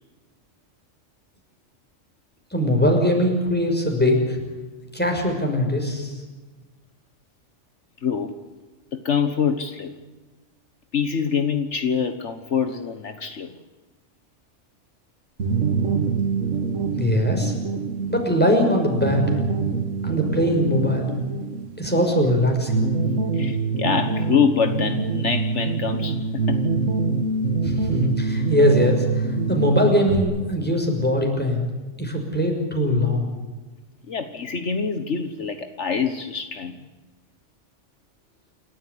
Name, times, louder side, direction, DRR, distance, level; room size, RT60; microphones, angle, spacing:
voice 1, 2.5-4.4 4.9-6.1 17.0-17.5 18.1-19.4 20.0-21.1 21.8-22.9 27.6-31.7 32.0-33.3, equal, 10° left, 1 dB, 5.9 m, -21 dB
voice 2, 8.0-8.4 8.9-10.0 10.9-13.5 23.3-26.6 34.1-36.9, left 6 dB, 65° left, 8 dB, 1.6 m, -25 dB
sound 1, 15.4-30.2, right 4 dB, 80° right, 2.3 m, -25 dB
28.5 x 13.5 x 10.0 m, 1.2 s
omnidirectional pair, 1.3 m